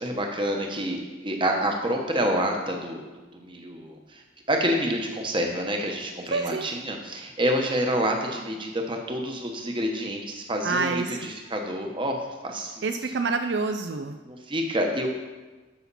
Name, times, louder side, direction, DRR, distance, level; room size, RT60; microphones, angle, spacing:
voice 1, 0.0-3.0 3.3-4.2 4.5-12.8 14.3-15.1, equal, 25° right, 2 dB, 1.1 m, -28 dB
voice 2, 6.3-6.7 10.6-11.3 12.8-14.2, right 4 dB, 60° right, 7 dB, 0.4 m, -27 dB
13.0 x 5.8 x 4.1 m, 1.2 s
head